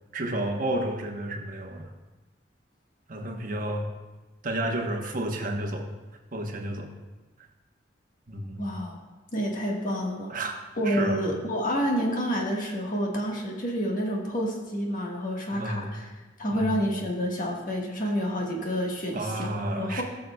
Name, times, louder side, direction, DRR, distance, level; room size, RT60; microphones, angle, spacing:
voice 1, 0.1-1.9 3.1-3.9 4.4-5.9 6.3-6.9 8.3-8.7 10.3-10.6 10.8-11.2 15.5-15.8 16.5-16.8 18.0-18.1 19.1-20.0, right 1 dB, 50° right, 2 dB, 1.1 m, -31 dB
voice 2, 8.6-9.0 9.3-10.3 10.8-16.1 16.4-20.0, equal, 50° left, -1 dB, 1.5 m, -29 dB
17.0 x 6.5 x 2.3 m, 1.2 s
head